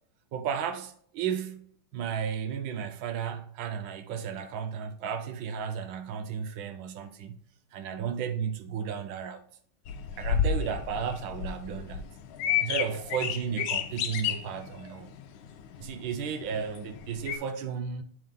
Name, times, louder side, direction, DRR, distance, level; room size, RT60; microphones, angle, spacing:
voice 1, 0.3-7.4 7.7-9.4 10.2-12.1 12.6-15.1 15.8-18.0, right 7 dB, 75° right, 1.4 m, -34 dB
sound 1, 9.9-17.4, left 8 dB, 75° left, 1.4 m, -32 dB
8.6 x 3.7 x 3.5 m
omnidirectional pair, 2.3 m